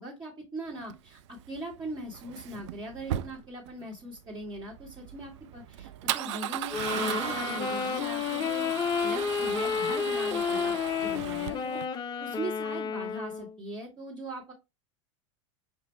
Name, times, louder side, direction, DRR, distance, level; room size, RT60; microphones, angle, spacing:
voice 1, 0.0-11.8 12.2-14.5, right 1 dB, 30° right, -3 dB, 1.6 m, -40 dB
Male speech man speaking / Car / Engine starting, 0.8-11.9, right 13 dB, 65° right, 0.4 m, -37 dB
Wind instrument woodwind instrument, 6.7-13.5, left 7 dB, 25° left, 0.5 m, -31 dB
5.1 x 2.7 x 3.1 m, 0.23 s
hypercardioid pair, 85°, 16 cm